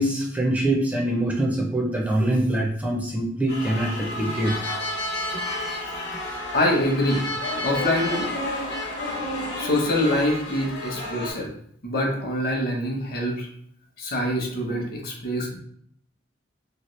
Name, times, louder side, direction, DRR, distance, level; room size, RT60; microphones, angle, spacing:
voice 1, 0.0-4.5, right 1 dB, 10° right, -2 dB, 0.4 m, -24 dB
sound 1, 3.5-11.3, left 1 dB, 75° left, 1.0 m, -31 dB
voice 2, 6.5-7.2 7.6-8.3 9.6-11.5 11.8-13.5 14.0-15.6, left 1 dB, 55° left, 1 dB, 0.7 m, -25 dB
2.8 x 2.7 x 3.0 m, 0.66 s
head